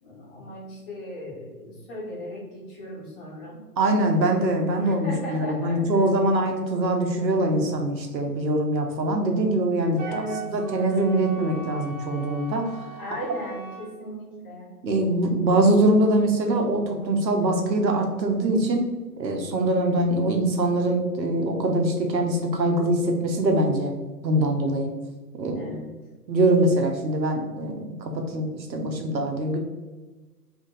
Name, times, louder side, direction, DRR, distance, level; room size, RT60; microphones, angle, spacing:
voice 1, 0.0-3.6 4.8-6.0 10.1-10.5 13.0-14.7 25.5-25.9, left 1 dB, 35° left, -5 dB, 1.5 m, -37 dB
voice 2, 3.8-10.2 10.5-12.7 13.2-13.3 14.8-18.9 19.2-23.9 24.2-24.9 25.3-25.7 26.3-29.6, right 1 dB, 85° right, 3 dB, 1.0 m, -23 dB
Wind instrument woodwind instrument, 10.0-13.9, right 4 dB, 45° right, 1.0 m, -39 dB
3.1 x 2.6 x 3.8 m, 1.2 s
hypercardioid pair, 145°, 50 cm